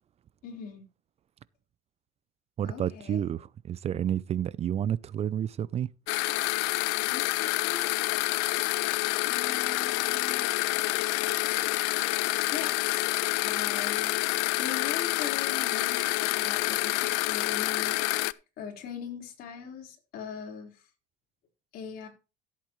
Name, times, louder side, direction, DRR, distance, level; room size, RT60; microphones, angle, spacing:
voice 1, 0.4-0.8 2.6-3.2 7.0-7.9 9.2-10.5 11.1-11.3 12.5-14.1 14.6-20.9 21.7-22.1, left 6 dB, 60° left, 4.2 m, -41 dB
voice 2, 2.6-5.9, right 10 dB, 40° right, 0.5 m, -30 dB
sound 1, 6.1-18.3, left 22 dB, 80° left, 0.5 m, -28 dB
15.0 x 8.3 x 3.1 m
supercardioid pair, 95°, 17 cm